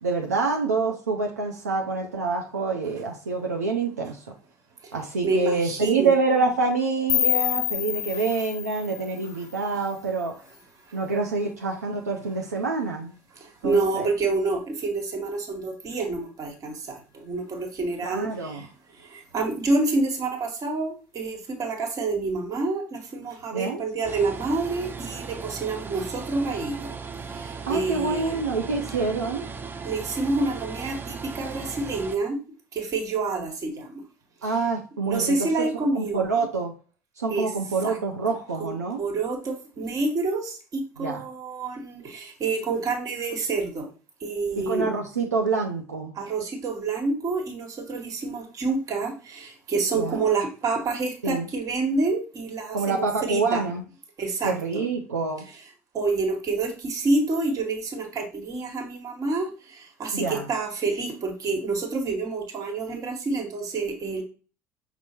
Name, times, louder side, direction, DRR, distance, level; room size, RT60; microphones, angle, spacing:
voice 1, 0.0-4.3 4.9-10.3 10.9-13.1 13.6-14.1 18.0-18.7 23.5-23.8 27.7-29.4 34.4-35.7 35.9-36.7 37.2-39.0 41.0-41.2 44.5-46.1 49.9-50.2 51.2-51.5 52.7-53.8 54.4-55.4 60.1-60.5, right 4 dB, 85° right, 1 dB, 0.5 m, -26 dB
voice 2, 5.2-6.1 10.9-11.0 13.4-18.7 19.0-27.0 27.3-28.4 29.8-32.4 32.7-34.0 34.4-34.5 35.1-36.2 37.3-37.5 37.8-38.0 38.6-38.7 39.0-43.9 44.2-44.9 46.1-53.6 54.2-54.8 55.9-64.2, right 3 dB, 45° right, 4 dB, 1.2 m, -28 dB
sound 1, 7.1-10.0, left 12 dB, 60° left, 0.5 m, -28 dB
sound 2, 24.0-32.2, right 5 dB, 25° right, 0.5 m, -37 dB
5.5 x 2.0 x 4.3 m, 0.36 s
figure-of-eight pair, 60°, 8 cm